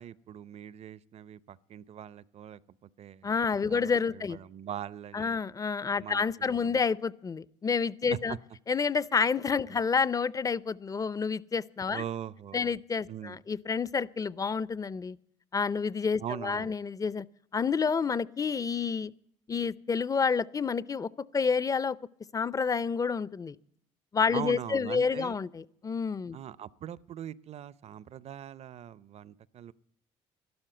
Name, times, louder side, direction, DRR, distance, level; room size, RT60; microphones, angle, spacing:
voice 1, 0.0-3.4 3.7-5.4 6.0-6.8 8.1-8.4 9.7-9.8 11.9-12.8 13.1-13.4 16.2-16.7 24.3-25.4 26.3-29.7, right 10 dB, 55° right, 19 dB, 0.6 m, -41 dB
voice 2, 3.2-4.4 5.1-8.4 8.7-12.0 12.5-15.2 15.5-17.3 17.5-19.1 19.5-22.0 22.3-23.6 24.1-26.4, left 5 dB, 25° left, 20 dB, 0.5 m, -29 dB
12.0 x 12.0 x 7.9 m, 0.72 s
supercardioid pair, 75°, 13 cm